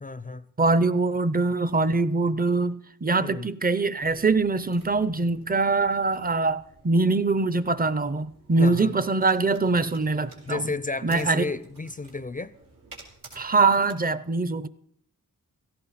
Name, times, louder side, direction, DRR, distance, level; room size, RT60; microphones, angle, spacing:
voice 1, 0.0-0.5 3.2-3.5 8.6-8.9 10.4-12.5, left 3 dB, 25° left, 0.5 m, -32 dB
voice 2, 0.6-10.7 11.0-11.4 13.3-14.7, right 3 dB, 25° right, 0.6 m, -23 dB
sound 1, 4.0-13.9, right 3 dB, 90° right, 3.9 m, -52 dB
17.0 x 14.5 x 4.1 m
wide cardioid pair, 95°, 34 cm